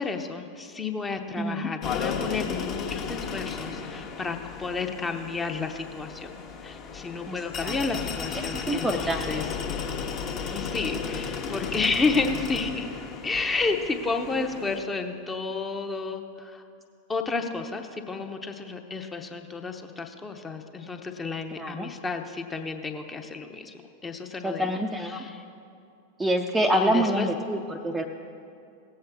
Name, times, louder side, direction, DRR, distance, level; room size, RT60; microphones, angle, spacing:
voice 1, 0.0-6.3 6.6-9.5 10.5-12.9 13.2-16.6 17.1-23.7 24.0-24.8 25.1-25.4 26.7-27.3, left 4 dB, 15° left, 5 dB, 0.8 m, -31 dB
voice 2, 1.4-1.7 7.3-7.7 8.3-9.5 21.6-21.9 24.4-25.2 26.2-28.0, equal, 10° right, 4 dB, 0.5 m, -27 dB
sound 1, 1.8-14.8, left 6 dB, 35° left, 1.1 m, -34 dB
17.5 x 7.7 x 3.6 m, 2.5 s
figure-of-eight pair, 90°, 0 cm